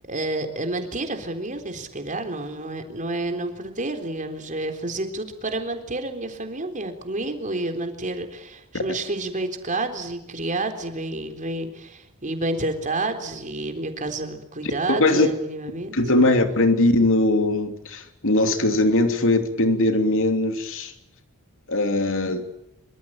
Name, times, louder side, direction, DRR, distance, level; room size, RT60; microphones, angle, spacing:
voice 1, 0.1-16.3, right 2 dB, 35° right, 6 dB, 3.8 m, -29 dB
voice 2, 14.9-15.3 15.9-20.9 21.7-22.5, left 2 dB, 65° left, 7 dB, 3.0 m, -20 dB
25.5 x 24.5 x 8.9 m, 0.83 s
head